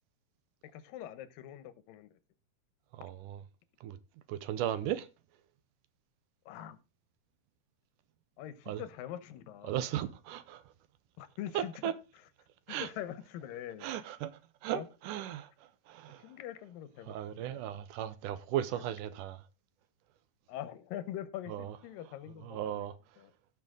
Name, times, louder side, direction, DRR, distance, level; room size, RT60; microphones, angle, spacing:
voice 1, 0.6-2.2 6.5-6.8 8.4-9.8 11.2-11.9 12.7-13.9 14.7-14.9 16.2-17.7 18.7-18.9 20.5-22.9 23.2-23.3, left 11 dB, 85° left, 2.7 m, -44 dB
voice 2, 2.9-3.4 3.8-4.0 4.3-5.1 8.7-8.8 9.6-10.6 11.5-11.9 12.7-12.9 13.8-15.5 15.9-16.2 17.1-19.4 21.5-21.7 22.4-22.9, right 11 dB, 75° right, 2.2 m, -36 dB
17.0 x 6.0 x 3.7 m
omnidirectional pair, 3.9 m